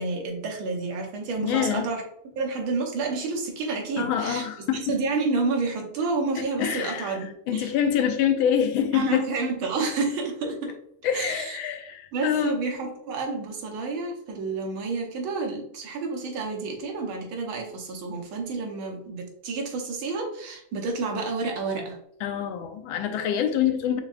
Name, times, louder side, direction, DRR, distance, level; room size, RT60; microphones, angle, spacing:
voice 1, 0.0-2.0 2.4-4.5 4.7-7.7 8.9-10.8 11.1-11.6 12.1-22.0, right 3 dB, 90° right, 2 dB, 1.8 m, -29 dB
voice 2, 1.4-1.9 4.0-5.0 6.4-9.2 11.0-12.6 22.2-24.0, left 9 dB, 85° left, 7 dB, 1.4 m, -26 dB
5.7 x 3.5 x 2.4 m, 0.72 s
omnidirectional pair, 2.2 m